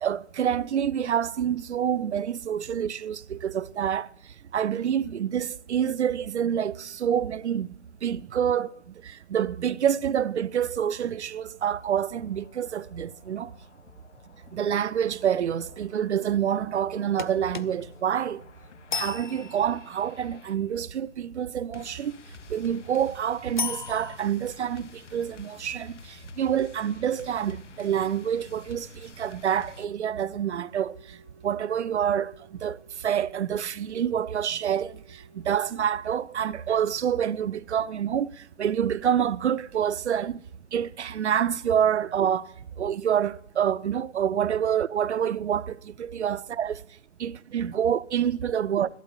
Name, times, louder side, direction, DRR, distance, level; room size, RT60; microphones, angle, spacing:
voice 1, 0.0-4.1 4.5-7.7 8.0-8.8 9.0-13.5 14.5-18.4 18.9-22.1 22.5-26.0 26.4-31.0 31.4-32.8 33.0-34.9 35.3-38.3 38.6-40.4 40.7-42.4 42.8-46.8 47.2-48.9, right 9 dB, 70° right, 0.5 m, -27 dB
sound 1, 11.1-29.9, left 6 dB, 85° left, 0.9 m, -51 dB
sound 2, 17.2-20.1 23.6-24.2, left 5 dB, 45° left, 0.4 m, -35 dB
Wind instrument woodwind instrument, 30.3-36.4, right 3 dB, 20° right, 0.6 m, -57 dB
11.5 x 8.9 x 7.2 m
hypercardioid pair, 165°, 35 cm